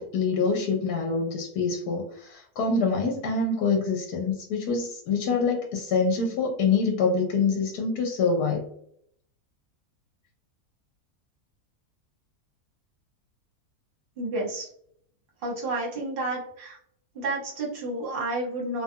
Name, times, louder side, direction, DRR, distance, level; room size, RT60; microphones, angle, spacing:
voice 1, 0.0-8.7, left 4 dB, 80° left, 0 dB, 1.1 m, -25 dB
voice 2, 14.2-14.7 15.4-16.8 17.1-18.8, right 2 dB, 45° right, -3 dB, 1.0 m, -30 dB
2.6 x 2.3 x 2.6 m, 0.65 s
omnidirectional pair, 1.6 m